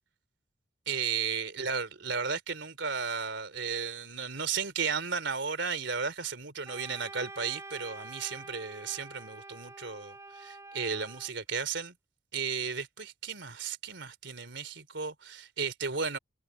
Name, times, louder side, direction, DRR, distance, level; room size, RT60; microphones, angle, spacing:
voice 1, 0.9-11.9 12.3-16.2, right 5 dB, 70° right, 3.1 m, -34 dB
Wind instrument woodwind instrument, 6.7-11.3, right 2 dB, 15° right, 5.9 m, -47 dB
head